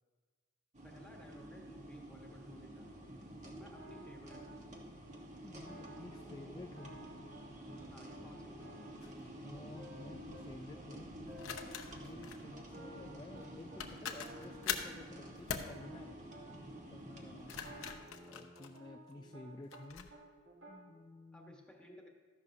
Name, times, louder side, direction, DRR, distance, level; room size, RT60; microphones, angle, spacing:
sound 1, 0.7-17.9, right 1 dB, 35° right, 1.3 m, -50 dB
voice 1, 0.8-2.9 3.5-4.6 7.9-8.9 21.3-22.1, equal, 5° left, 0 dB, 1.4 m, -56 dB
sound 2, 2.7-4.8 5.1-5.2 5.5-7.8 8.1-10.4 10.7-10.8 11.1-11.7 12.0-13.8 14.1-16.8 17.5-19.8 20.1-20.7, equal, 75° right, 3.2 m, -55 dB
voice 2, 5.4-6.9 9.4-11.6 11.9-16.2 16.9-17.5 18.3-20.1 20.7-21.6, left 2 dB, 20° left, 4 dB, 0.3 m, -52 dB
sound 3, 9.0-9.2 11.4-12.4 13.4-13.5 13.8-15.0 15.5-15.7 17.3-19.1 19.7-20.1, left 7 dB, 90° left, 0.8 m, -42 dB
13.5 x 11.0 x 2.8 m, 1.4 s
head